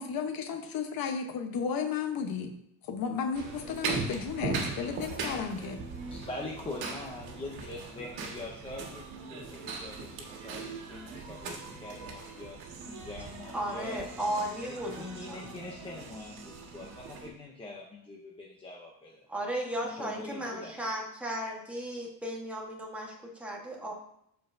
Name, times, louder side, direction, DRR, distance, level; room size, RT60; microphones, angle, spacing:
voice 1, 0.0-2.5 2.8-5.8, left 6 dB, 50° left, 5 dB, 1.0 m, -33 dB
sound 1, 3.3-17.3, right 4 dB, 80° right, 1.7 m, -39 dB
voice 2, 6.1-9.0 9.3-14.1 14.6-19.2 19.8-20.7, left 2 dB, 10° left, -3 dB, 0.6 m, -43 dB
voice 3, 13.5-15.4 19.3-23.9, right 1 dB, 5° right, -2 dB, 1.2 m, -35 dB
13.0 x 4.5 x 2.6 m, 0.73 s
cardioid pair, 165°, 47 cm